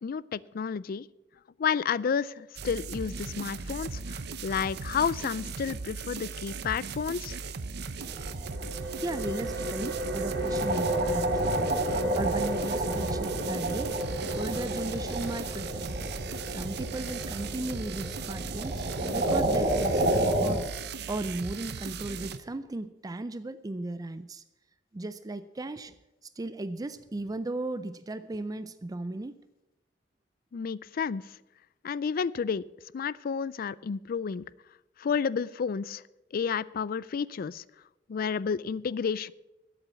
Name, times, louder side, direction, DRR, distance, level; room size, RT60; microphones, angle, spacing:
voice 1, 0.0-1.1 1.6-7.4 30.5-31.2 31.8-32.6 32.9-34.4 35.0-36.0 36.3-37.6 38.1-39.3, left 6 dB, 50° left, 21 dB, 0.4 m, -31 dB
sound 1, 2.6-22.4, right 4 dB, 60° right, 0.7 m, -38 dB
sound 2, 8.0-20.6, right 1 dB, 45° right, 2.5 m, -31 dB
sound 3, 8.4-19.8, equal, 75° right, 2.6 m, -35 dB
voice 2, 9.0-11.5 12.2-14.0 14.3-15.9 16.5-18.8 19.1-20.6 21.1-24.4 24.9-26.0 26.2-29.4, right 2 dB, 20° right, 13 dB, 0.4 m, -36 dB
13.0 x 8.1 x 7.1 m, 0.99 s
head